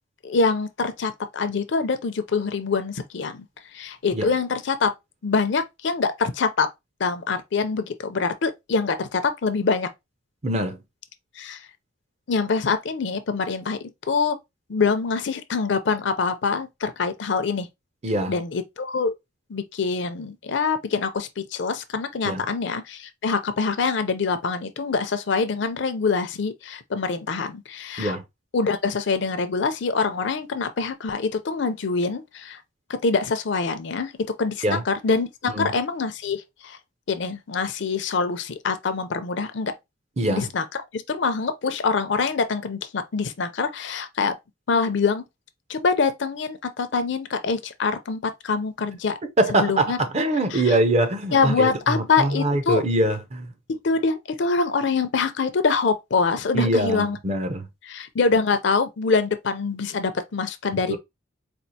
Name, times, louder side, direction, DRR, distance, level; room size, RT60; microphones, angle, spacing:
voice 1, 0.2-3.4 3.7-4.9 5.2-6.7 7.0-9.9 11.4-11.6 12.3-14.4 14.7-17.7 18.3-19.1 19.5-28.2 28.5-32.6 33.0-34.1 34.4-36.8 37.1-39.7 40.3-40.6 40.9-44.3 44.7-45.2 45.7-49.2 49.5-50.0 50.5-50.8 51.3-52.8 53.7-57.2 57.8-61.0, left 4 dB, 55° left, 0.5 m, -25 dB
voice 2, 10.4-10.8 18.0-18.3 22.2-22.4 28.0-28.2 34.6-34.8 35.6-35.7 40.2-40.5 49.2-53.5 56.5-57.7 60.7-61.0, right 1 dB, 30° right, 0.5 m, -23 dB
4.3 x 2.4 x 2.7 m
head